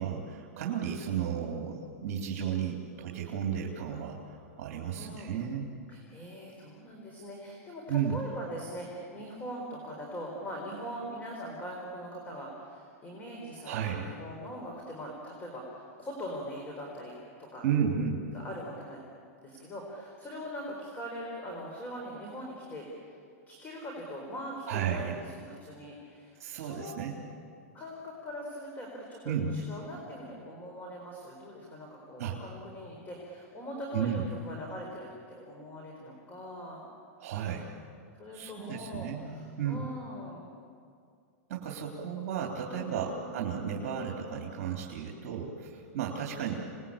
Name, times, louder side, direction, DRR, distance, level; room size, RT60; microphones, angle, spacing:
voice 1, 0.0-5.7 7.9-8.2 13.6-14.0 17.6-18.2 24.7-25.2 26.4-27.2 29.3-29.6 32.2-32.4 33.9-34.3 37.2-37.7 38.3-39.9 41.5-46.6, right 8 dB, 55° right, -1 dB, 3.4 m, -33 dB
voice 2, 4.9-5.3 5.9-17.7 18.3-19.0 19.4-23.2 23.5-27.0 27.7-36.8 38.2-40.4 42.7-43.4, equal, 20° left, 0 dB, 4.5 m, -42 dB
27.5 x 20.0 x 8.8 m, 2.3 s
supercardioid pair, 145°, 8 cm